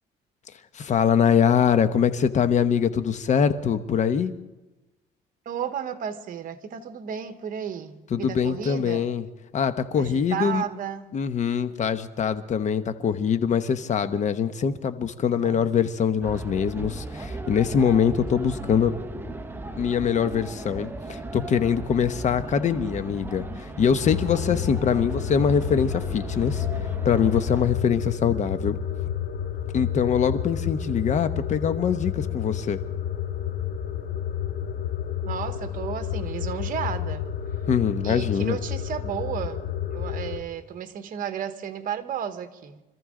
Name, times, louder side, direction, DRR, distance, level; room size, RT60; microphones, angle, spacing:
voice 1, 0.7-4.3 8.1-9.2 9.5-10.6 11.1-18.9 19.8-23.5 23.8-26.6 27.0-28.8 29.7-32.8 37.7-38.6, left 7 dB, 45° left, 1.0 m, -23 dB
voice 2, 5.4-9.1 10.0-11.1 15.4-15.6 35.2-37.3 38.0-39.6 39.9-42.8, right 8 dB, 55° right, 1.3 m, -33 dB
sound 1, 16.2-27.7, right 2 dB, 10° right, 1.0 m, -36 dB
sound 2, 24.0-40.4, left 9 dB, 65° left, 1.8 m, -30 dB
26.0 x 14.0 x 3.8 m
cardioid pair, 110°, 17 cm